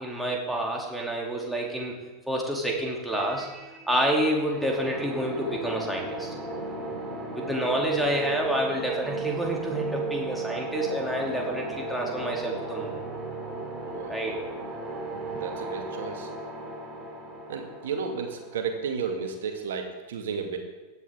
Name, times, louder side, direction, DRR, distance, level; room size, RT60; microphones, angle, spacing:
voice 1, 0.0-2.0 2.3-6.3 7.3-13.0 14.1-14.4 15.3-15.4, right 1 dB, ahead, -2 dB, 2.8 m, -28 dB
sound 1, 4.5-19.2, right 2 dB, 20° right, 3.0 m, -36 dB
voice 2, 13.9-14.2 15.1-16.3 17.5-20.6, right 6 dB, 60° right, 4 dB, 2.0 m, -33 dB
16.5 x 10.5 x 3.7 m, 1.2 s
figure-of-eight pair, 90°, 0 cm